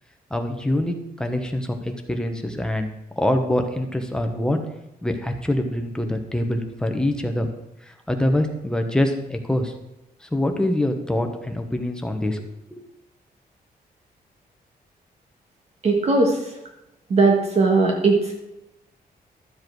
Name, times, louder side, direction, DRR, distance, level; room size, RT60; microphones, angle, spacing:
voice 1, 0.3-2.9 3.2-4.6 5.0-7.5 7.9-9.7 10.2-12.8, left 1 dB, 5° left, 5 dB, 1.0 m, -25 dB
voice 2, 15.8-16.4 17.1-18.3, right 3 dB, 45° right, 1 dB, 1.5 m, -18 dB
12.5 x 7.6 x 4.6 m, 0.92 s
wide cardioid pair, 165°, 16 cm